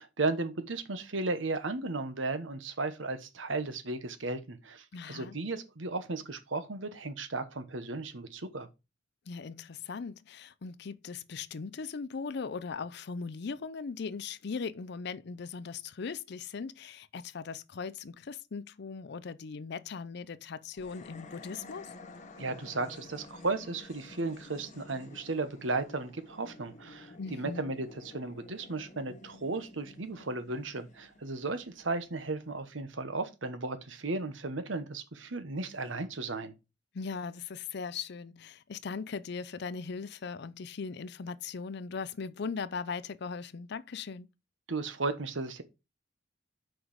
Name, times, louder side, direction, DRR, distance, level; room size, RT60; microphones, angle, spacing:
voice 1, 0.0-8.7 22.4-36.5 44.7-45.6, right 3 dB, 85° right, 1.2 m, -35 dB
voice 2, 4.9-5.4 9.3-21.9 27.2-27.6 36.9-44.3, left 5 dB, 60° left, 0.5 m, -39 dB
sound 1, 20.7-32.1, left 2 dB, 40° left, 1.1 m, -51 dB
6.1 x 4.8 x 5.0 m
head